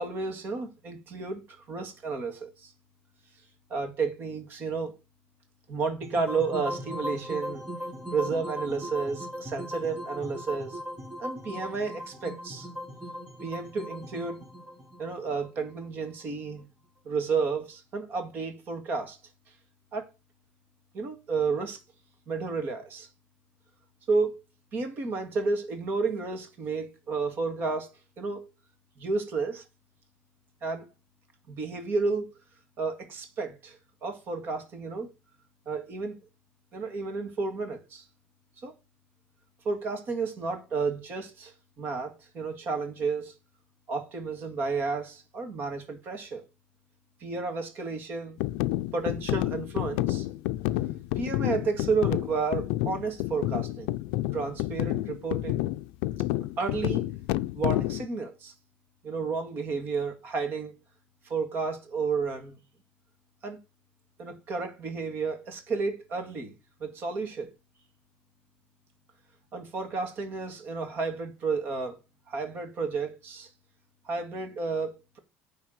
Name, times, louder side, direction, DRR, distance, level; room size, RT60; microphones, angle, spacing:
voice 1, 0.0-2.7 3.7-4.9 5.7-7.6 8.1-10.8 11.2-12.7 13.4-14.4 15.0-16.6 17.1-19.2 19.9-20.1 20.9-21.8 22.3-23.1 24.1-24.4 24.7-28.5 29.0-29.6 30.6-30.9 31.5-32.3 32.8-35.1 35.7-36.2 36.7-38.0 38.6-38.7 39.6-43.4 43.9-46.4 47.2-48.4 48.9-50.3 51.2-53.9 54.3-55.7 56.6-57.0 57.5-58.5 59.0-60.7 61.2-62.6 63.4-63.6 64.2-66.5 66.8-67.5 69.5-72.0 72.3-73.5 74.0-75.2, right 4 dB, 45° right, 2.0 m, -31 dB
sound 1, 6.0-16.2, equal, 10° right, 4.7 m, -38 dB
sound 2, 48.4-58.1, left 17 dB, 85° left, 0.5 m, -29 dB
9.5 x 3.6 x 6.3 m
cardioid pair, 135°, 5 cm